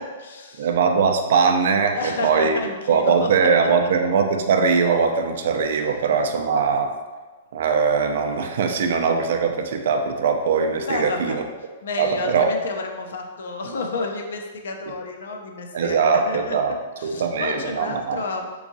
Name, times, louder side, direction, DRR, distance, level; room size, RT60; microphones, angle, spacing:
voice 1, 0.0-0.7 1.9-3.9 10.8-11.4 11.8-18.5, left 3 dB, 80° left, 2 dB, 0.5 m, -31 dB
voice 2, 0.6-2.6 2.9-6.9 7.5-11.4 12.0-12.5 15.7-16.7 17.0-18.2, right 5 dB, 70° right, 5 dB, 0.4 m, -21 dB
3.5 x 3.0 x 2.6 m, 1.3 s
hypercardioid pair, 140°, 0 cm